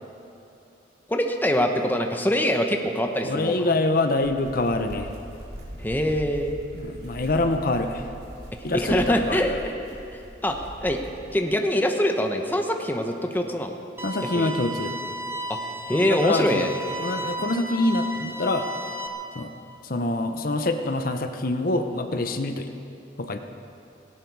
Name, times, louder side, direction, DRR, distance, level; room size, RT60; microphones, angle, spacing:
voice 1, 1.1-3.7 5.8-6.6 8.7-9.7 10.4-11.0 11.3-13.7 14.3-14.5 15.5-15.6 15.9-16.7, equal, 10° left, 4 dB, 1.0 m, -24 dB
voice 2, 3.2-5.1 6.7-8.1 8.6-9.4 14.0-14.9 15.9-16.7 17.0-18.7 19.3-19.5 19.8-22.7 23.2-23.4, left 2 dB, 55° left, 7 dB, 0.8 m, -25 dB
sound 1, 4.2-11.2, equal, 65° right, 4.0 m, -41 dB
sound 2, 14.0-19.1, equal, 15° right, 1.2 m, -34 dB
17.5 x 17.0 x 4.8 m, 2.7 s
head